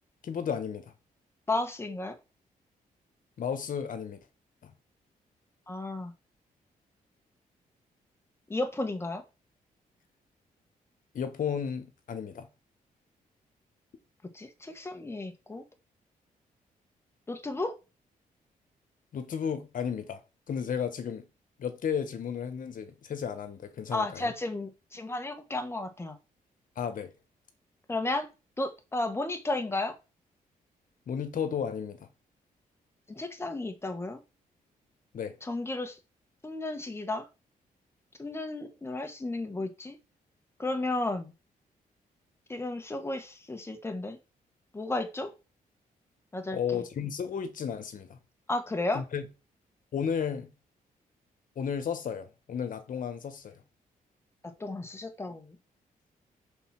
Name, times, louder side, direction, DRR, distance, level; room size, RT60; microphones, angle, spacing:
voice 1, 0.2-0.8 3.4-4.2 4.6-4.7 11.1-12.5 19.1-20.2 20.5-21.2 21.6-24.3 26.8-27.1 31.1-32.1 35.1-35.4 46.5-48.2 48.9-49.3 49.9-50.5 51.6-53.6, left 7 dB, 65° left, 1.4 m, -33 dB
voice 2, 1.5-2.1 5.7-6.1 8.5-9.2 14.3-15.6 17.3-17.7 23.9-26.2 27.9-28.3 28.6-30.0 33.1-34.2 35.4-36.0 36.4-37.3 38.2-40.0 40.6-41.3 42.5-44.2 44.7-45.3 46.3-46.8 48.5-49.0 54.4-55.6, left 2 dB, 15° left, 1.4 m, -33 dB
5.4 x 4.3 x 6.0 m
cardioid pair, 100°, 15 cm